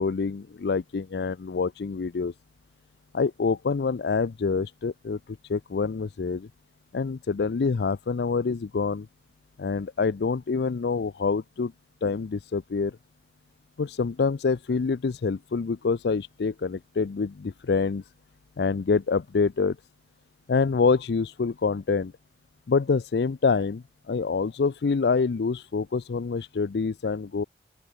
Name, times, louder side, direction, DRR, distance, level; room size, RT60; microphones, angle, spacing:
voice 1, 0.0-2.3 3.1-5.2 5.5-6.5 6.9-9.1 9.6-11.7 12.0-13.0 13.8-18.0 18.6-19.8 20.5-22.1 22.7-27.4, left 4 dB, 70° left, 0.4 m, -26 dB
open air
head